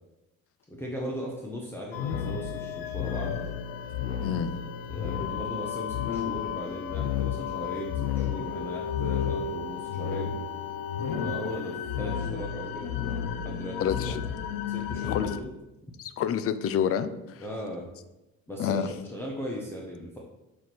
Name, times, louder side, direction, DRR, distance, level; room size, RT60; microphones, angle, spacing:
voice 1, 0.7-3.4 4.9-10.4 11.1-12.9 13.4-13.9 14.7-15.5 17.4-17.9 18.5-20.2, equal, 5° left, 0.8 m, -37 dB
sound 1, 1.9-15.4, left 8 dB, 90° left, 0.6 m, -32 dB
voice 2, 4.2-4.6 13.8-14.2 15.0-15.3 16.0-17.4 18.6-18.9, left 8 dB, 45° left, 0.4 m, -28 dB
6.9 x 3.2 x 6.0 m
cardioid pair, 155°, 33 cm